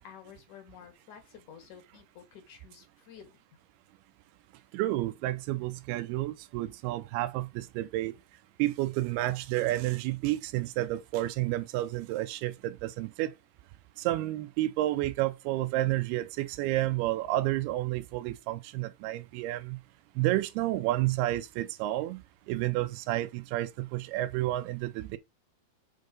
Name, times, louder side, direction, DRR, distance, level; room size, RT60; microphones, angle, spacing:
voice 1, 0.0-3.3, left 8 dB, 55° left, 2.6 m, -51 dB
voice 2, 4.7-8.1 8.6-13.3 14.0-19.8 20.2-22.2 22.5-25.2, right 16 dB, 80° right, 2.5 m, -30 dB
6.6 x 4.4 x 5.2 m
omnidirectional pair, 4.7 m